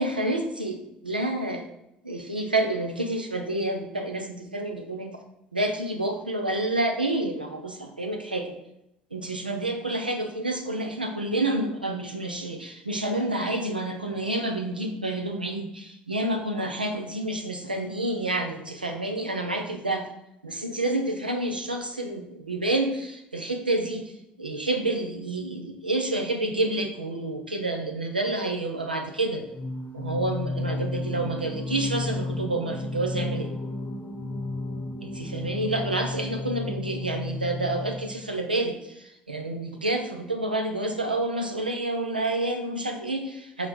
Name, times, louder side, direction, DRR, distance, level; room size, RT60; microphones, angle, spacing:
voice 1, 0.0-1.7 2.0-5.1 5.5-8.6 9.1-20.0 20.4-24.1 24.4-29.4 29.9-33.5 35.0-43.7, right 2 dB, 90° right, 4 dB, 0.6 m, -29 dB
Singing, 29.5-38.4, left 2 dB, 25° left, 0.8 m, -33 dB
5.3 x 4.0 x 4.7 m, 0.85 s
figure-of-eight pair, 60°, 5 cm